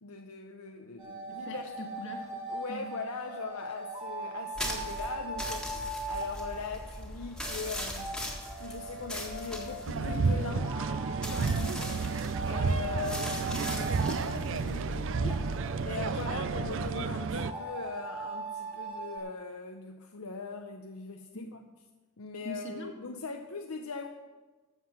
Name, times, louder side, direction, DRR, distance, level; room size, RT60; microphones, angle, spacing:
voice 1, 0.0-1.6 2.5-8.1 8.6-10.8 12.4-15.5 15.8-21.6 22.2-24.1, left 4 dB, 75° left, 4 dB, 0.7 m, -40 dB
sound 1, 1.0-19.2, right 2 dB, 20° right, 2.2 m, -40 dB
voice 2, 1.3-2.3 2.7-2.9 11.4-11.8 21.3-21.5 22.4-22.9, left 1 dB, 55° left, 3 dB, 1.8 m, -41 dB
sound 2, 4.5-17.0, equal, 5° left, 1.6 m, -40 dB
sound 3, 9.9-17.5, right 5 dB, 60° right, 0.4 m, -31 dB
14.0 x 7.7 x 5.9 m, 1.3 s
head